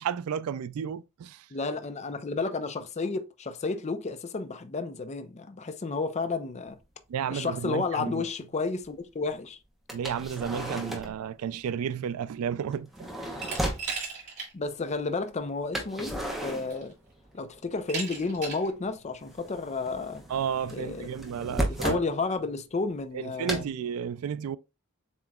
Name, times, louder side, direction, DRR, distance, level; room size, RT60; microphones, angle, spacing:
voice 1, 0.0-1.5 7.1-8.2 9.9-13.3 20.3-22.0 23.1-24.6, right 8 dB, 80° right, 0.3 m, -32 dB
voice 2, 1.5-6.8 7.3-9.6 14.5-16.9 17.3-20.2 20.7-21.0 21.7-23.6, left 3 dB, 30° left, 0.5 m, -32 dB
sound 1, 6.8-6.9 7.6-7.7 9.9-11.2 12.7-14.0 15.7-17.4 17.7-18.5 18.8-22.1 23.5-23.7, equal, ahead, 0.8 m, -34 dB
Glass, 13.4-14.5 14.9-15.0 16.1-16.2 16.7-17.1 17.9-18.7, right 4 dB, 35° right, 2.6 m, -36 dB
7.3 x 2.9 x 2.3 m
head